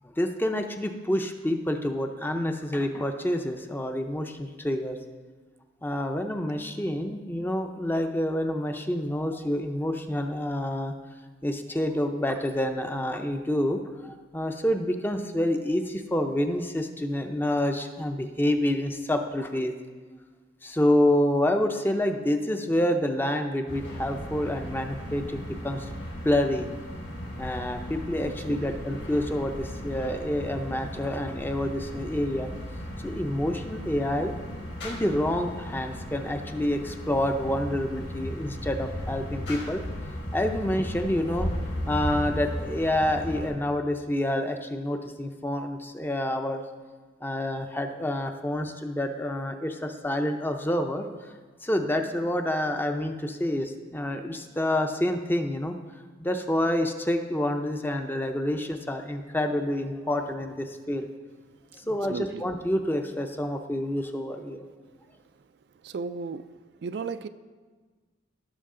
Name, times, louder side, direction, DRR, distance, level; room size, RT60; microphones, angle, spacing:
voice 1, 0.0-5.0 5.8-10.9 11.4-19.7 20.6-25.9 26.2-26.7 27.4-32.5 33.0-34.5 34.8-39.8 40.3-41.5 41.9-46.6 47.2-51.3 51.6-55.7 56.2-61.1 61.7-64.6, left 1 dB, 10° left, 6 dB, 0.5 m, -28 dB
sound 1, 23.7-43.5, equal, 75° left, 3.4 m, -36 dB
voice 2, 61.7-62.4 65.8-66.5 66.8-67.3, right 5 dB, 60° right, 12 dB, 0.3 m, -35 dB
16.5 x 6.3 x 3.8 m, 1.4 s
head